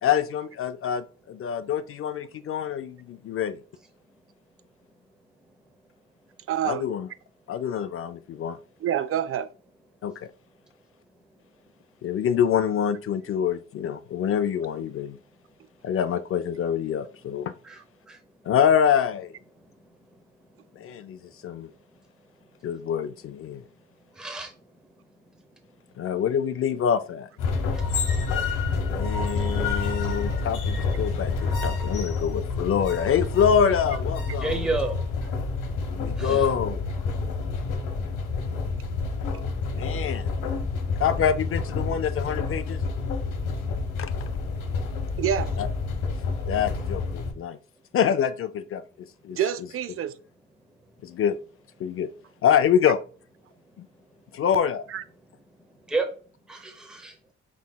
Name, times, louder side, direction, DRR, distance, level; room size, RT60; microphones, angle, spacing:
voice 1, 0.0-3.6 6.6-7.1 7.5-8.6 10.0-10.3 12.0-15.2 15.8-17.5 18.5-19.3 20.8-21.7 22.6-23.6 26.0-27.3 29.0-34.7 35.9-36.9 39.7-40.3 41.0-42.8 44.0-44.1 45.6-45.7 46.5-47.6 47.9-49.4 51.0-51.4 51.8-52.1 52.4-53.0 53.8-53.9 54.3-54.9, left 8 dB, 50° left, 0.4 m, -26 dB
voice 2, 6.5-6.9 8.8-9.5 45.2-45.5 49.4-50.1 54.9-55.0, right 9 dB, 50° right, 0.4 m, -27 dB
voice 3, 24.2-24.5 34.4-34.9 36.2-36.4 55.9-56.1 56.5-57.1, right 3 dB, ahead, 0.7 m, -29 dB
sound 1, 27.4-47.3, left 4 dB, 85° left, 0.9 m, -28 dB
4.7 x 3.8 x 2.2 m
cardioid pair, 90°, 30 cm